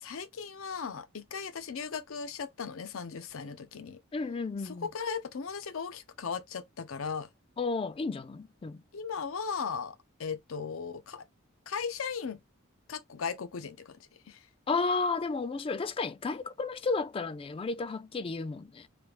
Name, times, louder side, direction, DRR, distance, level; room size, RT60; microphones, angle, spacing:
voice 1, 0.0-4.0 4.6-7.3 8.9-11.3 11.7-12.4 12.9-14.0 14.3-14.4, left 6 dB, 75° left, 0.6 m, -37 dB
voice 2, 4.1-4.9 7.6-8.8 14.7-18.9, left 4 dB, 25° left, 0.3 m, -32 dB
3.3 x 2.4 x 3.1 m
head